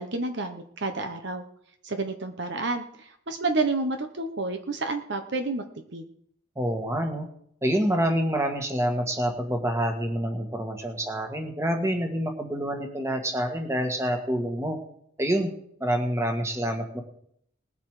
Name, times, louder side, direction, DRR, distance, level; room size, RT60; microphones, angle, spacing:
voice 1, 0.0-1.4 1.8-5.6 5.9-6.0, right 3 dB, 55° right, 6 dB, 1.1 m, -29 dB
voice 2, 6.6-7.3 7.6-14.8 15.2-15.5 15.8-17.0, equal, 15° right, 4 dB, 1.8 m, -27 dB
20.0 x 8.1 x 5.0 m, 0.68 s
head